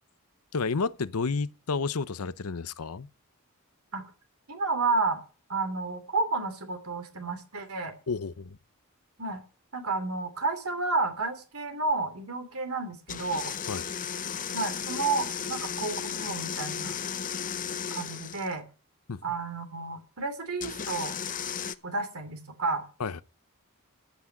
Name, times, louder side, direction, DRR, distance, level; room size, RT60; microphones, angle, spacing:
voice 1, 0.5-3.1 8.1-8.6 13.7-13.8 19.1-19.2 23.0-23.2, left 4 dB, 85° left, 0.7 m, -31 dB
voice 2, 4.5-5.2 5.5-7.9 9.2-9.4 9.7-13.6 14.5-17.0 17.9-18.7 19.2-21.2 21.8-22.9, right 3 dB, 75° right, 3.0 m, -31 dB
sound 1, 13.1-18.5 20.6-21.7, left 7 dB, 40° left, 0.8 m, -34 dB
14.5 x 6.2 x 9.7 m
head